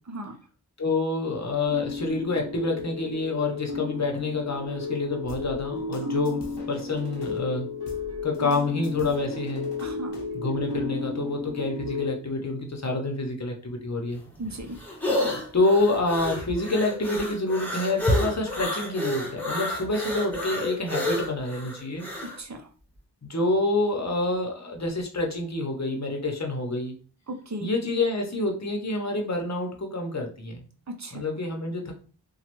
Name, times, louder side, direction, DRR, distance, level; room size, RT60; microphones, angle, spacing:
voice 1, 0.8-7.7 8.2-9.7 10.3-14.2 15.5-22.1 23.2-27.0 27.6-30.6 31.1-31.9, left 2 dB, 40° left, 2 dB, 0.8 m, -27 dB
sound 1, 1.6-12.1, left 4 dB, 60° right, 1.1 m, -33 dB
sound 2, 5.3-7.4 7.9-10.4, left 2 dB, 80° left, 0.8 m, -45 dB
voice 2, 9.8-10.2 14.4-14.8 22.2-22.7 27.3-27.7 30.9-31.2, right 1 dB, 40° right, 4 dB, 0.7 m, -36 dB
sound 3, 14.1-22.4, left 1 dB, 5° left, 1.1 m, -31 dB
3.1 x 2.3 x 3.0 m, 0.40 s
wide cardioid pair, 45°, 41 cm